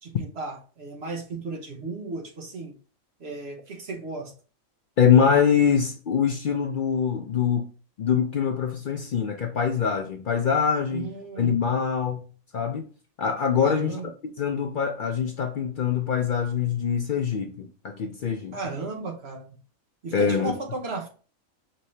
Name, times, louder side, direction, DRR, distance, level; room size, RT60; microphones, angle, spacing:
voice 1, 0.0-2.8 3.2-4.3 10.9-11.7 13.6-14.1 18.5-19.6 20.0-21.1, right 3 dB, 55° right, 1.1 m, -35 dB
voice 2, 5.0-7.7 8.0-11.1 11.4-12.3 12.5-12.9 13.2-14.0 14.4-18.6 20.1-20.5, left 7 dB, 75° left, 0.4 m, -24 dB
5.3 x 2.7 x 3.2 m
omnidirectional pair, 1.4 m